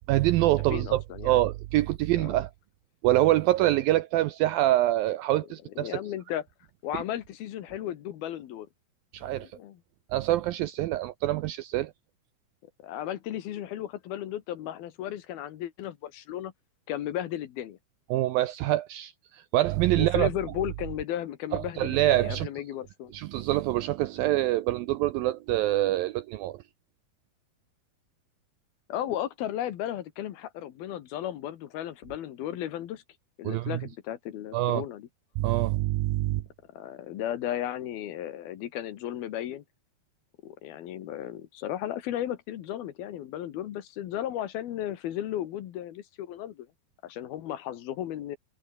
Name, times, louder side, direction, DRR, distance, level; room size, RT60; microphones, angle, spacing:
voice 1, 0.1-2.5 3.0-6.0 6.9-7.0 9.1-9.5 10.1-11.9 18.1-20.3 21.5-22.5 23.1-26.6 33.4-33.8 34.5-34.8 35.4-36.4, right 15 dB, 80° right, 2.1 m, -25 dB
voice 2, 0.7-1.4 2.1-2.4 5.8-6.5 6.8-8.7 9.2-9.8 12.8-16.5 16.9-17.8 20.0-23.1 28.9-33.0 33.4-35.1 36.7-39.6 40.4-46.7 47.0-48.4, left 11 dB, 70° left, 3.1 m, -35 dB
omnidirectional pair, 4.9 m